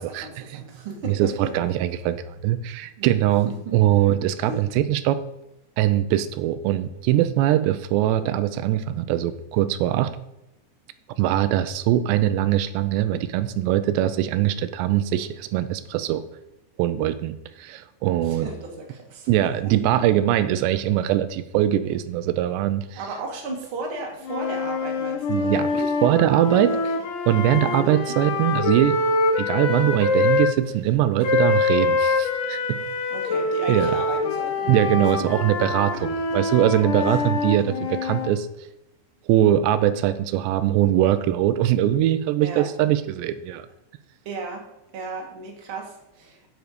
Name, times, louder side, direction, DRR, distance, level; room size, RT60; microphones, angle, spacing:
voice 1, 0.0-1.5 3.0-3.1 3.5-3.8 4.4-4.6 18.2-19.7 22.9-25.9 26.7-27.0 27.5-28.2 33.1-34.7 35.9-36.0 37.0-37.2 37.6-37.8 42.4-42.7 44.2-44.6 44.9-46.5, right 3 dB, 40° right, 0 dB, 2.3 m, -35 dB
voice 2, 1.1-5.2 5.8-10.1 11.2-16.2 16.8-18.5 19.3-23.0 25.3-25.7 26.0-26.8 27.3-29.0 29.4-32.8 33.7-34.0 34.7-38.5 39.3-43.7, right 12 dB, 90° right, 12 dB, 2.9 m, -22 dB
sound 1, 24.2-30.5 31.2-38.3, left 3 dB, 60° left, 2.4 m, -24 dB
9.2 x 8.0 x 5.0 m, 0.88 s
omnidirectional pair, 4.8 m